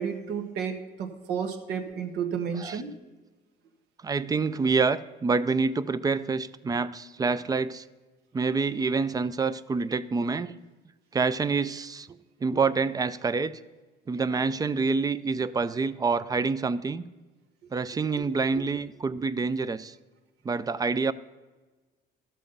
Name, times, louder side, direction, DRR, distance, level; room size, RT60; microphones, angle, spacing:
voice 1, 0.0-2.9 18.6-18.7, right 7 dB, 80° right, 6 dB, 1.4 m, -32 dB
voice 2, 4.0-7.8 8.3-10.6 11.1-12.1 12.4-13.6 14.1-17.0 17.7-19.9 20.4-21.1, right 4 dB, 20° right, 15 dB, 0.4 m, -27 dB
12.5 x 7.4 x 5.4 m, 1.2 s
cardioid pair, 110°, 17 cm